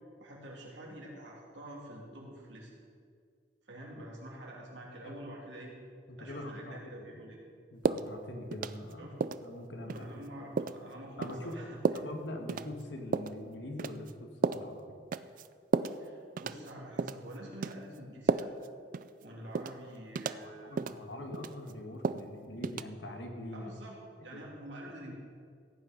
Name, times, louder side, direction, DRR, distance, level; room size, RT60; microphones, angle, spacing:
voice 1, 0.2-2.7 3.7-5.7 6.1-7.4 9.0-9.1 9.8-11.8 15.9-18.5 19.2-20.8 23.5-24.0 24.2-25.1, right 1 dB, 85° right, -2 dB, 3.1 m, -47 dB
voice 2, 6.1-7.1 7.7-9.2 9.4-10.3 11.2-11.6 11.9-15.0 20.2-23.7 24.3-24.4, left 1 dB, 80° left, 3 dB, 1.7 m, -43 dB
sound 1, 7.8-8.1 8.5-8.9 9.2-9.4 9.9-10.0 10.6-10.8 11.2-11.4 11.8-12.1 12.5-12.7 13.1-13.4 13.8-14.1 14.4-14.7 15.1-15.5 15.7-16.0 16.4-16.7 17.0-17.2 17.6-17.8 18.3-18.7 18.9-19.1 19.5-19.8 20.1-20.4 20.8-21.0 21.3-21.7 22.0-22.3 22.6-22.8, right 4 dB, 50° right, 0.4 m, -32 dB
15.0 x 9.0 x 5.3 m, 2.2 s
head